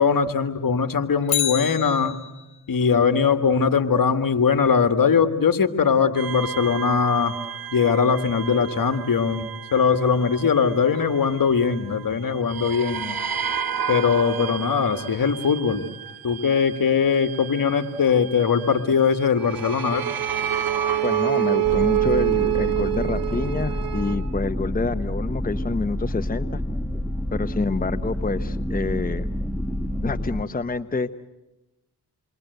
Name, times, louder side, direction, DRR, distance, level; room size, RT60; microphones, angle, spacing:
voice 1, 0.0-2.2 2.7-7.4 7.7-13.2 13.9-15.9 16.2-20.1, left 6 dB, 60° left, 9 dB, 1.9 m, -21 dB
Bicycle, 1.2-2.6 10.9-11.0, left 11 dB, 80° left, 1.6 m, -28 dB
sound 1, 6.2-12.1 12.5-24.2, right 11 dB, 65° right, 2.1 m, -29 dB
voice 2, 21.0-26.6 27.3-29.3 30.0-31.1, left 3 dB, 20° left, 11 dB, 0.9 m, -27 dB
sound 2, 21.6-30.4, left 1 dB, 5° left, 1.8 m, -28 dB
28.0 x 22.5 x 8.0 m, 0.97 s
cardioid pair, 50°, 38 cm